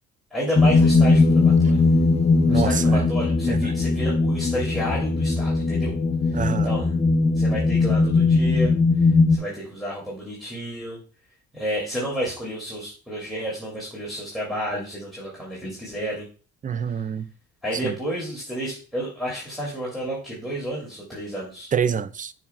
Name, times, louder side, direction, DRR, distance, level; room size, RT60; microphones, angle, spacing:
voice 1, 0.3-1.8 2.4-6.0 6.2-6.9 7.3-11.0 11.5-16.2 17.6-21.7, equal, ahead, 2.5 m, -31 dB
sound 1, 0.6-9.4, left 3 dB, 20° left, 0.6 m, -19 dB
voice 2, 2.5-3.0 3.5-3.7 6.3-6.7 16.6-17.3 17.8-17.9 21.7-22.3, right 7 dB, 25° right, 0.4 m, -26 dB
7.0 x 6.0 x 2.3 m
cardioid pair, 90°, 30 cm